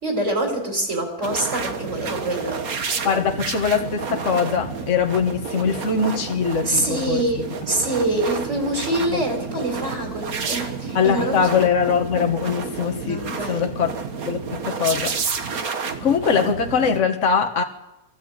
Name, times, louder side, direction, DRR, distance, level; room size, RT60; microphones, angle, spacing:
voice 1, 0.0-2.6 6.6-11.5 13.0-13.6, right 1 dB, 50° right, 4.9 m, -25 dB
sound 1, 1.2-17.0, right 5 dB, 70° right, 1.9 m, -30 dB
voice 2, 3.0-7.2 11.0-13.2 13.5-13.9 14.3-15.2 16.0-17.6, left 6 dB, 55° left, 1.8 m, -22 dB
23.5 x 15.5 x 8.7 m
omnidirectional pair, 1.6 m